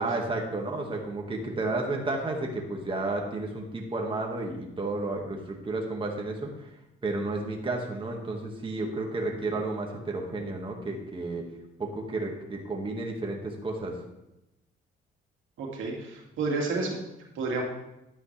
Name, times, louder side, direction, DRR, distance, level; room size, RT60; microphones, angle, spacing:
voice 1, 0.0-6.7 7.0-11.4 11.8-14.0, right 2 dB, 25° right, 0 dB, 1.9 m, -32 dB
voice 2, 15.6-17.0 17.3-17.6, right 3 dB, 80° right, -1 dB, 2.3 m, -30 dB
11.0 x 9.0 x 3.4 m, 0.90 s
cardioid pair, 90°, 20 cm